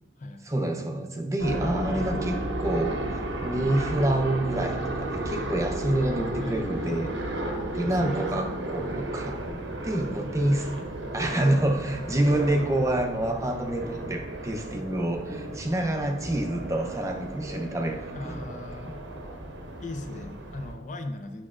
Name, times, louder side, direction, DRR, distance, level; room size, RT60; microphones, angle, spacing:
voice 1, 0.5-7.1 7.7-9.4 9.8-10.7 11.1-18.5, right 1 dB, 15° right, 3 dB, 0.6 m, -27 dB
sound 1, 1.4-20.7, right 1 dB, 75° right, 0.9 m, -34 dB
voice 2, 6.4-7.1 7.8-8.5 11.0-11.2 18.1-19.0 19.8-21.5, left 2 dB, 40° left, 7 dB, 0.4 m, -38 dB
9.7 x 6.0 x 2.4 m, 1.2 s
head